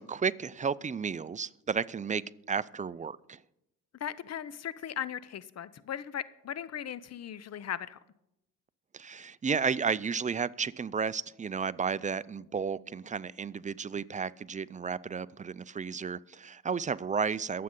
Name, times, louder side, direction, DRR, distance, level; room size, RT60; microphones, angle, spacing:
voice 1, 0.0-3.4 8.9-17.6, right 6 dB, 20° right, 0.4 m, -33 dB
voice 2, 4.0-8.0, left 9 dB, 45° left, 0.7 m, -38 dB
22.5 x 7.7 x 3.8 m
supercardioid pair, 65°, 36 cm